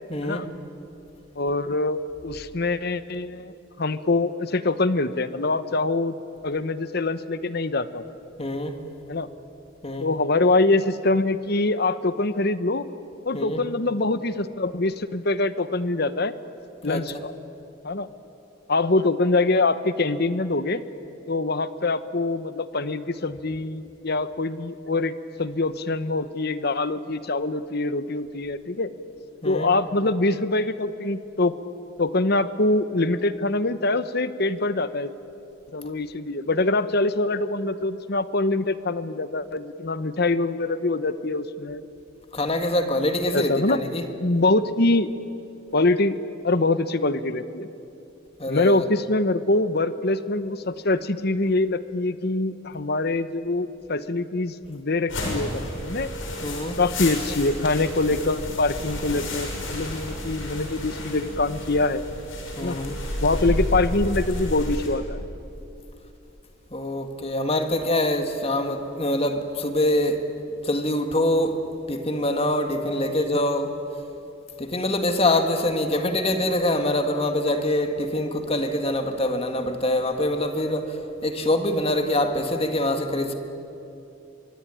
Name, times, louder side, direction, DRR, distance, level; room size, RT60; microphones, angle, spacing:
voice 1, 0.1-0.5 8.4-8.8 9.8-10.1 13.3-13.6 16.8-17.0 29.4-29.7 42.3-44.0 48.4-48.8 56.4-56.8 62.6-63.0 66.7-70.2 70.6-71.6 71.9-73.8 74.6-83.3, left 1 dB, 30° left, 1.9 m, -24 dB
voice 2, 1.3-6.2 6.4-8.0 9.1-9.3 10.0-12.9 13.2-16.3 16.8-17.3 17.8-18.1 18.7-20.8 21.3-28.9 29.4-31.5 32.0-35.1 35.7-41.8 43.3-43.8 44.2-45.1 45.7-46.2 46.4-47.7 48.5-56.1 56.8-62.0 62.6-62.8 63.2-65.2 73.1-73.4, left 2 dB, 55° left, 1.0 m, -24 dB
sound 1, 55.1-64.9, left 1 dB, 80° left, 6.4 m, -31 dB
24.0 x 24.0 x 10.0 m
head